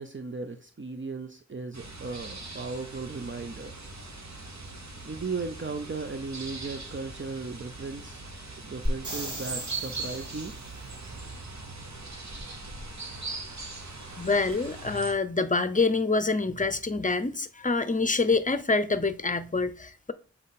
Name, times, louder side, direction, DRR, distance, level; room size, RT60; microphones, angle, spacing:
voice 1, 0.0-3.8 5.0-8.2 8.6-10.5, right 4 dB, 40° right, 0.6 m, -36 dB
sound 1, 1.7-15.1, right 3 dB, 65° right, 1.3 m, -40 dB
sound 2, 8.8-10.7 14.5-14.6, equal, 90° right, 2.7 m, -36 dB
voice 2, 14.2-20.1, left 3 dB, 25° left, 0.6 m, -26 dB
7.3 x 4.3 x 4.1 m
wide cardioid pair, 60°, 30 cm